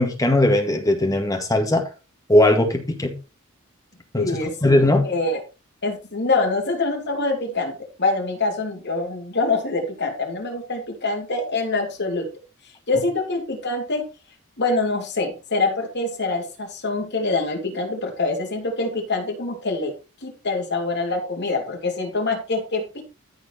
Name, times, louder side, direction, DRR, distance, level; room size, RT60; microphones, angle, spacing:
voice 1, 0.0-1.9 2.3-3.1 4.1-5.1, left 1 dB, 15° left, 1.9 m, -19 dB
voice 2, 4.2-4.5 5.0-5.4 5.8-7.7 8.0-12.3 12.9-14.1 14.6-19.9 20.2-23.0, left 3 dB, 55° left, 3.4 m, -25 dB
14.0 x 4.8 x 4.3 m
head